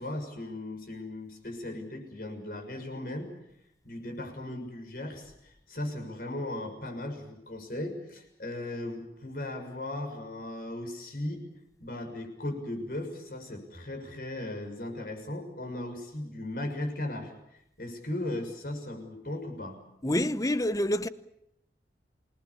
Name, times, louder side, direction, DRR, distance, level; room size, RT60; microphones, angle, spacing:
voice 1, 0.0-3.3 3.8-11.4 11.8-17.3 17.8-19.8, left 1 dB, 55° left, 6.7 m, -37 dB
voice 2, 20.0-21.1, left 1 dB, 20° left, 0.9 m, -27 dB
28.0 x 20.0 x 8.6 m
head